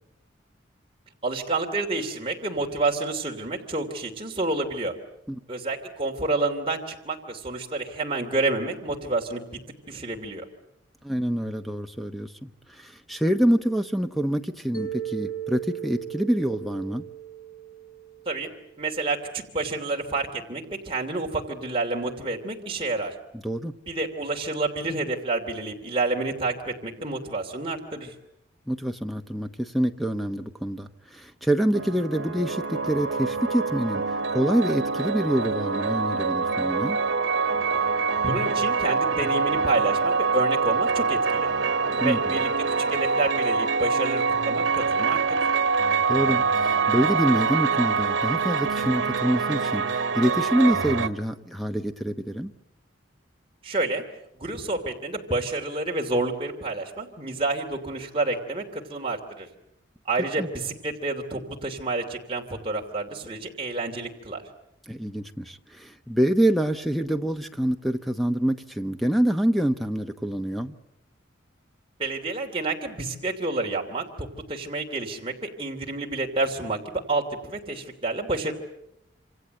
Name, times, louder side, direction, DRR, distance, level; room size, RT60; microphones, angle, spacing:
voice 1, 1.2-4.9 5.5-9.4 9.9-10.4 18.3-18.5 18.8-23.1 23.9-28.1 38.2-41.5 42.0-42.5 42.9-45.4 53.6-54.0 54.4-59.5 60.0-64.4 72.0-78.5, right 2 dB, 30° right, 0 dB, 2.8 m, -29 dB
voice 2, 11.0-17.0 23.4-23.7 28.7-34.0 34.3-37.0 42.0-42.3 46.1-52.5 60.4-60.5 64.9-70.7, right 1 dB, ahead, 7 dB, 1.0 m, -26 dB
Mallet percussion, 14.7-18.9, right 10 dB, 50° left, 1.0 m, -37 dB
sound 1, 31.7-51.1, right 4 dB, 80° right, 1.5 m, -25 dB
27.0 x 26.5 x 8.0 m, 0.82 s
head